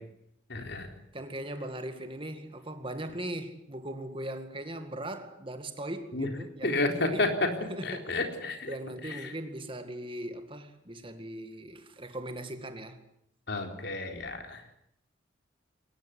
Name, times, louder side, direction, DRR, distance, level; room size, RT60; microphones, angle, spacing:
voice 1, 0.5-0.9 6.1-6.3 6.6-7.5 7.8-8.7 9.2-9.3 13.5-14.6, left 2 dB, 60° left, 3.9 m, -30 dB
voice 2, 1.1-7.3 7.7-8.2 8.7-13.0, right 1 dB, 25° right, 2.1 m, -39 dB
22.5 x 20.0 x 9.6 m
head